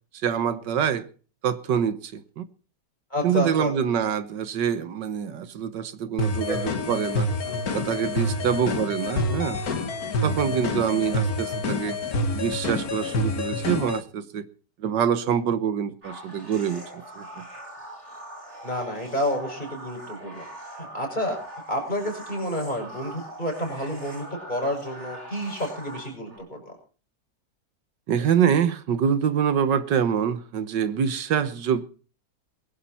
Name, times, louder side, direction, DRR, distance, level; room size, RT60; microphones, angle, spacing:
voice 1, 0.2-1.1 1.4-2.4 3.2-7.3 7.7-9.6 10.2-12.0 12.3-14.4 14.8-17.5 28.1-31.8, right 8 dB, 80° right, 1.7 m, -25 dB
voice 2, 3.1-3.7 6.5-6.6 7.4-7.6 18.6-20.5 20.7-21.4 21.7-26.8, left 1 dB, 25° left, 6.4 m, -30 dB
sound 1, 6.2-14.0, left 2 dB, 55° left, 2.0 m, -27 dB
sound 2, 16.0-26.4, right 1 dB, 40° right, 8.3 m, -42 dB
21.5 x 11.5 x 4.3 m
omnidirectional pair, 1.9 m